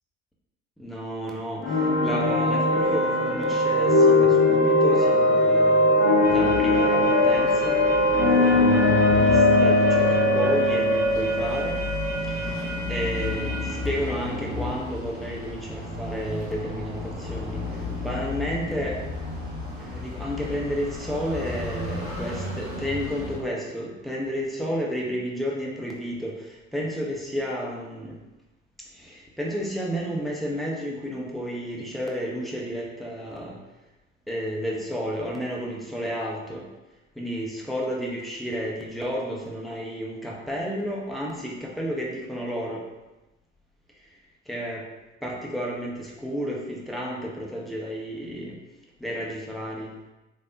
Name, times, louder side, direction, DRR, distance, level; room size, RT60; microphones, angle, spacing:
voice 1, 0.8-1.6 2.0-5.8 6.3-7.8 8.2-11.8 12.9-17.6 18.0-19.0 19.8-26.3 26.7-28.1 29.0-33.6 34.3-36.6 37.2-42.8 44.5-44.8 45.2-48.6 49.0-49.9, equal, ahead, -3 dB, 0.7 m, -31 dB
sound 1, 1.6-13.3, left 1 dB, 40° left, 0.8 m, -20 dB
sound 2, 6.2-23.4, left 2 dB, 80° right, 1.3 m, -33 dB
3.3 x 2.8 x 2.6 m, 1.0 s
figure-of-eight pair, 50°, 36 cm